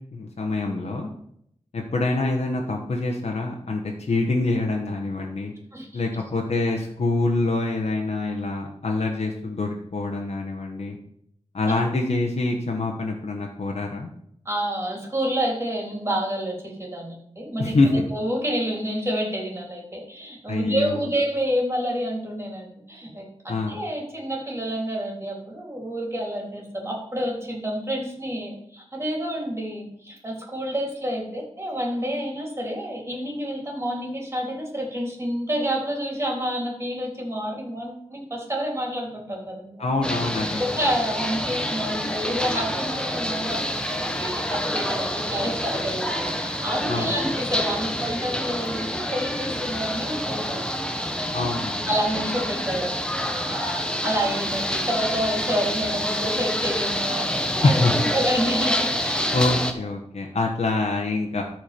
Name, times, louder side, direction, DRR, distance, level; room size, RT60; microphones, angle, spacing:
voice 1, 0.1-1.1 1.7-5.5 5.9-11.0 11.5-14.1 17.6-18.0 20.5-21.0 23.5-23.8 39.8-40.6 46.9-47.1 51.3-51.9 57.6-57.9 59.3-61.4, left 2 dB, 70° left, 0 dB, 1.2 m, -25 dB
voice 2, 14.5-40.0 40.6-50.7 51.9-59.4, equal, 20° right, -1 dB, 3.6 m, -29 dB
sound 1, 40.0-59.7, equal, 10° left, 1.2 m, -27 dB
13.0 x 4.6 x 5.2 m, 0.70 s
wide cardioid pair, 80°, 11 cm